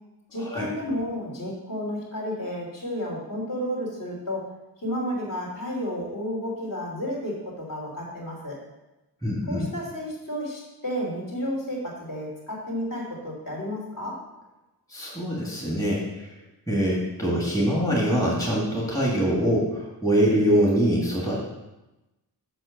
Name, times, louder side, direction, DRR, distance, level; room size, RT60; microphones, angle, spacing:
voice 1, 0.3-4.5 4.8-8.6 9.5-14.2, equal, 50° left, -4 dB, 3.1 m, -32 dB
voice 2, 9.2-9.6 14.9-16.3 16.7-21.4, equal, 10° left, -4 dB, 1.6 m, -24 dB
7.7 x 5.5 x 6.4 m, 1.0 s
wide cardioid pair, 165°, 42 cm